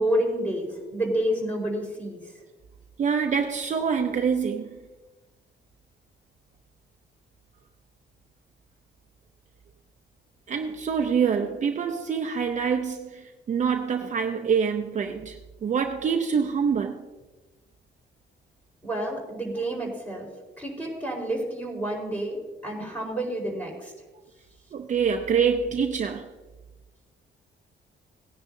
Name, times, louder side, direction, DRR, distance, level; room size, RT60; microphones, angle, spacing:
voice 1, 0.0-2.2 18.8-20.3 20.6-23.9, right 1 dB, 10° left, 4.4 m, -29 dB
voice 2, 3.0-4.8 10.5-17.1 24.7-26.3, right 6 dB, 40° right, 0.6 m, -26 dB
18.5 x 10.0 x 2.7 m
cardioid pair, 150°, 19 cm